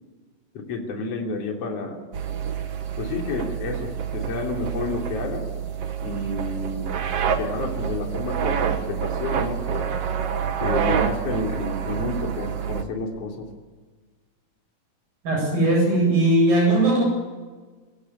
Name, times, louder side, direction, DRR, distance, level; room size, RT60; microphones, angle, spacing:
voice 1, 0.5-2.0 3.0-5.5 6.0-7.0 7.2-9.9 10.6-13.5, left 3 dB, 45° left, 1 dB, 4.0 m, -30 dB
sound 1, 2.1-12.8, right 7 dB, 55° right, 2.2 m, -27 dB
voice 2, 15.2-17.0, right 1 dB, 80° right, 1 dB, 9.9 m, -19 dB
27.0 x 17.5 x 9.8 m, 1.4 s
omnidirectional pair, 4.1 m